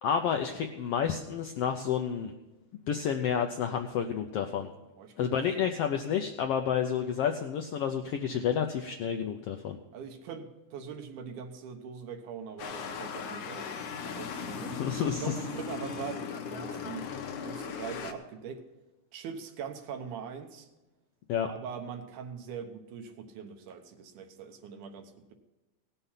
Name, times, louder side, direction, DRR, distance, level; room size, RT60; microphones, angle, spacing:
voice 1, 0.0-2.3 2.9-4.7 5.2-9.8 14.7-15.3 21.3-21.5, left 8 dB, 80° left, 5 dB, 1.3 m, -30 dB
voice 2, 5.0-5.4 9.9-13.7 14.0-14.8 15.2-17.1 17.4-18.6 19.1-20.7 21.5-25.3, right 6 dB, 80° right, 6 dB, 2.5 m, -42 dB
sound 1, 12.6-18.1, left 6 dB, 65° left, 1.8 m, -38 dB
18.0 x 6.8 x 5.7 m, 1.1 s
omnidirectional pair, 3.5 m